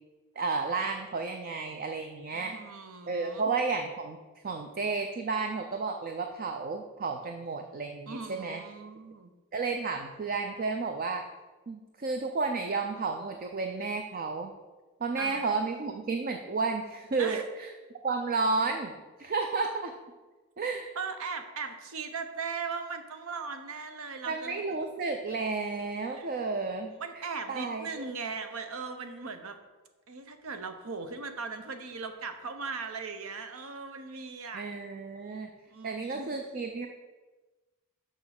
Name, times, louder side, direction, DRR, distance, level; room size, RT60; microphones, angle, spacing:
voice 1, 0.4-2.6 3.1-4.2 4.4-8.6 9.5-11.3 11.7-14.5 15.0-17.7 18.0-18.9 19.2-19.9 20.6-20.9 24.3-26.9 27.5-27.9 34.5-35.5 35.8-36.9, right 4 dB, 40° right, 5 dB, 0.5 m, -32 dB
voice 2, 2.3-3.5 8.1-9.3 15.2-15.4 17.2-17.4 21.0-24.6 26.1-26.4 27.0-29.6 30.1-34.7 35.7-36.4, right 4 dB, 65° right, 8 dB, 0.8 m, -38 dB
6.5 x 6.1 x 5.9 m, 1.2 s
head